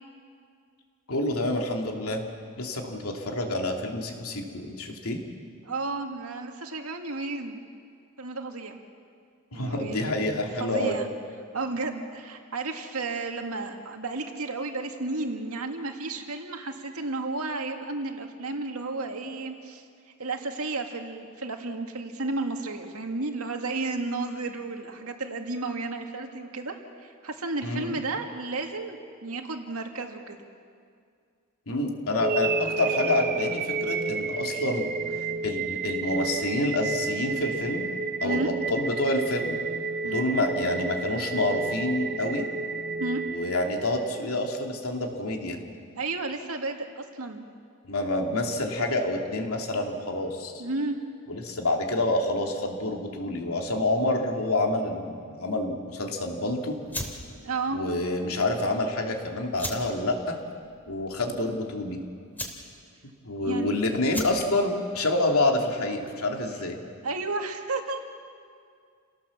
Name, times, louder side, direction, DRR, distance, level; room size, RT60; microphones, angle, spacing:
voice 1, 1.1-2.2 2.6-5.2 9.5-11.0 27.6-28.0 31.7-34.9 35.4-37.9 38.2-39.6 40.0-42.5 43.3-45.6 47.8-50.5 51.3-56.8 57.7-60.3 60.9-62.0 63.2-66.8, left 1 dB, 80° left, 2 dB, 2.9 m, -28 dB
voice 2, 5.6-7.6 8.2-8.8 9.5-11.1 11.5-19.8 20.2-30.4 38.2-38.5 40.0-40.3 43.0-43.2 46.0-47.4 50.6-51.0 57.4-57.8 63.4-63.7 67.0-68.0, right 3 dB, 80° right, 4 dB, 2.1 m, -33 dB
sound 1, 32.2-44.2, right 4 dB, 45° right, 1.0 m, -31 dB
sound 2, 56.8-66.4, left 1 dB, 10° left, 2.9 m, -41 dB
29.0 x 18.0 x 7.3 m, 2.2 s
head